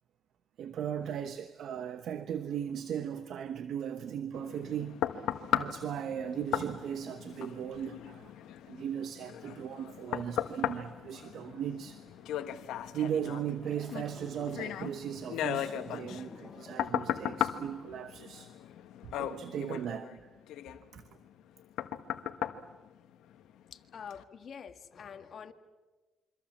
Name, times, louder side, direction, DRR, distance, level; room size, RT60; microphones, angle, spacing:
voice 1, 0.6-5.3 5.5-8.3 8.7-12.0 12.9-18.5 19.0-20.2 20.9-21.0, right 9 dB, 70° right, 1.1 m, -37 dB
sound 1, 4.3-23.6 24.1-24.2, left 11 dB, 85° left, 1.2 m, -37 dB
sound 2, 9.3-16.9, left 3 dB, 15° left, 4.2 m, -54 dB
voice 2, 23.7-25.5, left 7 dB, 55° left, 1.8 m, -46 dB
27.5 x 24.5 x 7.3 m
cardioid pair, 90°, 0 cm